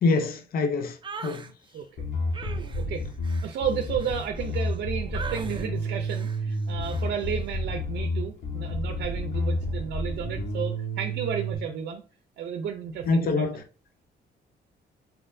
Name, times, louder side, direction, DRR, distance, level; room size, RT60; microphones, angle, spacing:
voice 1, 0.0-1.0 1.2-1.4 13.1-13.6, left 3 dB, 55° left, 0.6 m, -24 dB
sound 1, 1.0-1.5 2.3-4.8 5.1-5.7 6.1-6.4 6.8-7.1, right 5 dB, 25° right, 0.6 m, -41 dB
voice 2, 1.7-2.1 2.7-3.1 3.4-12.0 12.4-13.6, right 7 dB, 75° right, 0.6 m, -33 dB
Bass guitar, 2.0-11.6, equal, 75° left, 1.6 m, -30 dB
4.3 x 3.9 x 2.6 m
cardioid pair, 110°, 18 cm